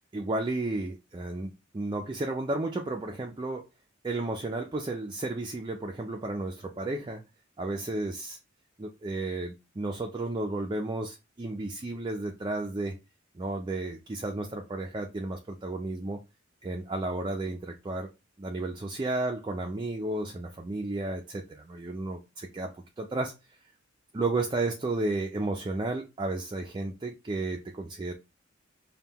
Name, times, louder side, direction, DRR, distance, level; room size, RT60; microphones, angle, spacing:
voice 1, 0.1-3.7 4.0-7.2 7.6-8.4 8.8-12.9 13.4-16.2 16.6-18.1 18.4-22.7 23.0-23.3 24.1-28.1, right 2 dB, 25° right, 0.4 m, -33 dB
5.4 x 2.2 x 2.8 m
head